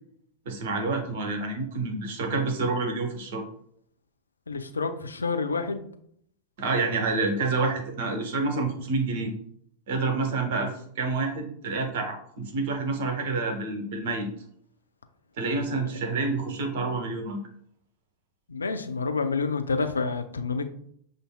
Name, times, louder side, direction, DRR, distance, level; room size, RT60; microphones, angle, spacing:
voice 1, 0.4-3.4 6.6-9.3 9.9-14.3 15.4-17.4, right 3 dB, 55° right, 3 dB, 0.9 m, -28 dB
voice 2, 4.5-5.9 18.5-20.7, left 4 dB, 75° left, 7 dB, 0.4 m, -28 dB
6.7 x 2.6 x 2.2 m, 0.66 s
figure-of-eight pair, 90°, 0 cm